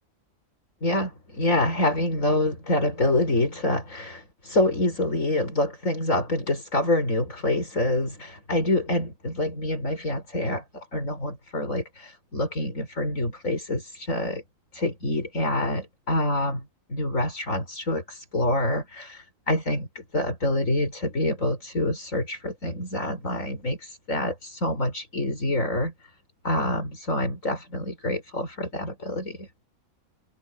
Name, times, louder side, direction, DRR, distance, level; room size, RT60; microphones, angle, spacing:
voice 1, 0.8-14.4 14.7-25.9 26.4-29.5, left 1 dB, 75° left, 6.0 m, -26 dB
omnidirectional pair, 1.4 m